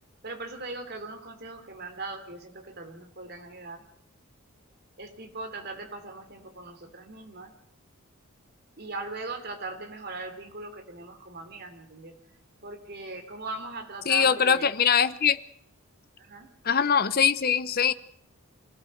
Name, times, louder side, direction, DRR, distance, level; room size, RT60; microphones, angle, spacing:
voice 1, 0.2-3.8 5.0-7.5 8.8-12.2 12.6-14.7 16.2-16.5, right 3 dB, 50° right, 6 dB, 3.3 m, -39 dB
voice 2, 14.1-15.4 16.6-17.9, left 7 dB, 45° left, 14 dB, 0.8 m, -22 dB
26.0 x 17.0 x 6.6 m, 0.70 s
head